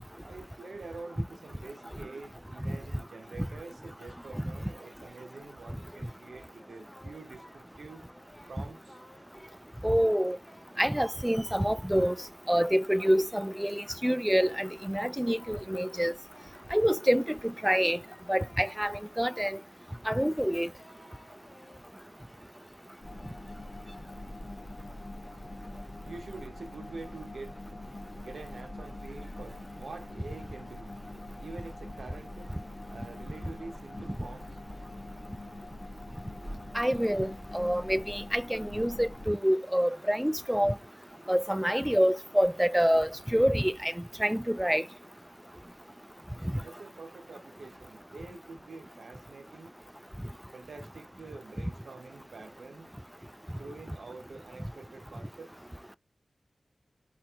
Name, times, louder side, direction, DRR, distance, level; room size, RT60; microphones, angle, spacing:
voice 1, 0.2-8.1 8.5-9.0 25.2-36.8 46.6-49.7 50.5-52.9 53.6-55.5, right 3 dB, 80° right, 0.7 m, -47 dB
Singing, 5.8-7.6 7.9-8.6 8.9-9.6 9.9-11.6 11.9-13.4 14.0-17.6 17.9-22.3, left 1 dB, 25° left, 1.2 m, -58 dB
voice 2, 9.8-10.4 10.8-12.2 12.5-16.1 16.7-18.0 18.3-19.6 20.1-20.7 36.7-40.8 41.3-43.9 44.2-44.8, equal, 5° right, 0.3 m, -27 dB
sound 1, 23.0-39.3, left 1 dB, 50° left, 1.1 m, -44 dB
4.3 x 4.2 x 2.4 m
wide cardioid pair, 65°, 0 cm